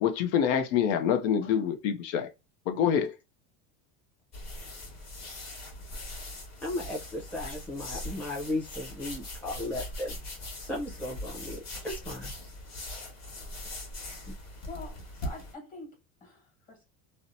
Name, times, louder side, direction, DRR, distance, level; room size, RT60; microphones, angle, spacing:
voice 1, 0.0-2.3 2.7-3.2, left 8 dB, 85° left, 0.6 m, -26 dB
sound 1, 4.3-15.5, left 1 dB, 45° left, 1.3 m, -41 dB
voice 2, 6.6-10.1 10.6-11.6 11.8-12.3 14.3-14.4, left 1 dB, 5° left, 0.6 m, -35 dB
voice 3, 14.7-16.8, left 3 dB, 20° left, 1.3 m, -46 dB
2.8 x 2.1 x 2.6 m
cardioid pair, 140°, 38 cm